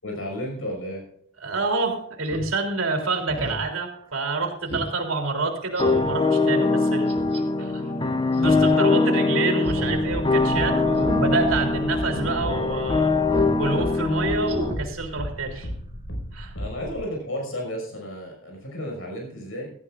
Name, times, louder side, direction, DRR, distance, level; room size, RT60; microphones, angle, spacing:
voice 1, 0.0-1.0 7.6-7.7 16.6-19.7, equal, 85° left, 1 dB, 5.7 m, -33 dB
voice 2, 1.4-7.1 7.6-7.7 8.3-15.7 16.3-16.5, right 3 dB, 80° right, 3 dB, 3.3 m, -27 dB
Speech synthesizer, 2.2-2.5 2.9-3.0 3.3-3.6 4.0-4.1 4.7-4.9 5.2-5.3 5.8-6.1 7.1-7.4 8.3-8.7 9.0-9.1 9.7-10.0 10.3-10.5 11.0-11.2 11.7-11.8 12.1-12.3 13.3-13.6 13.9-14.0 14.4-14.8 15.1-15.2, right 1 dB, 30° right, 1.8 m, -34 dB
sound 1, 5.8-14.7, left 3 dB, 25° left, 0.8 m, -22 dB
sound 2, 9.6-17.0, equal, 65° left, 4.9 m, -35 dB
16.5 x 14.0 x 2.5 m, 0.66 s
head